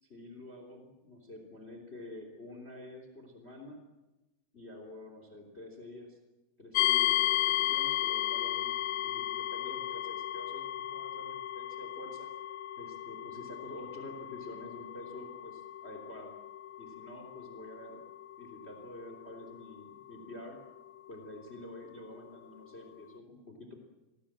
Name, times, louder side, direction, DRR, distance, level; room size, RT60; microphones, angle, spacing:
voice 1, 0.0-3.8 4.5-6.2 6.6-12.3 12.8-16.3 16.8-18.0 18.4-20.6 21.1-23.8, left 1 dB, 20° left, 5 dB, 3.2 m, -48 dB
sound 1, 6.7-21.6, left 14 dB, 65° left, 2.0 m, -34 dB
29.5 x 20.5 x 7.6 m, 1.1 s
omnidirectional pair, 4.1 m